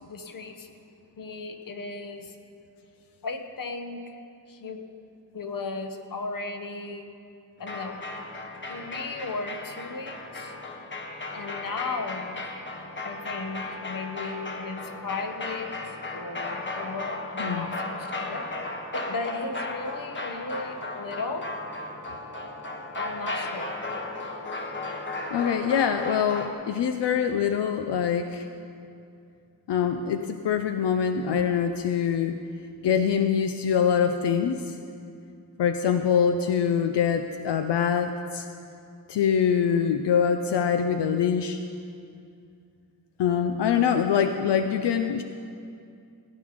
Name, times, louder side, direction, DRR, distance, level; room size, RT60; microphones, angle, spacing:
voice 1, 0.1-0.7 1.2-2.3 3.2-4.0 4.5-4.8 5.3-7.1 7.6-7.9 8.7-10.5 11.3-12.3 13.0-15.7 16.1-18.4 18.9-21.5 23.0-23.7, left 3 dB, 55° left, 6 dB, 1.1 m, -35 dB
sound 1, 7.6-26.5, left 2 dB, 30° left, 1.2 m, -35 dB
voice 2, 25.3-28.5 29.7-32.3 32.8-34.8 35.6-38.5 39.1-41.6 43.2-45.2, left 7 dB, 85° left, 7 dB, 0.6 m, -24 dB
17.0 x 9.9 x 5.1 m, 2.5 s
wide cardioid pair, 120°, 41 cm